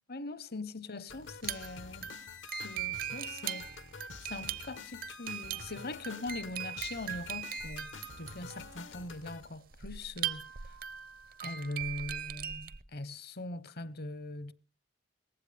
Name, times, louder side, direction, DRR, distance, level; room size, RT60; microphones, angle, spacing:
voice 1, 0.1-2.1 2.5-3.7 4.2-10.8 11.4-14.5, left 2 dB, 55° left, 0.9 m, -42 dB
sound 1, 1.1-9.5, left 5 dB, 80° left, 1.1 m, -48 dB
sound 2, 1.3-12.8, right 9 dB, 50° right, 0.7 m, -40 dB
19.0 x 15.5 x 3.4 m
head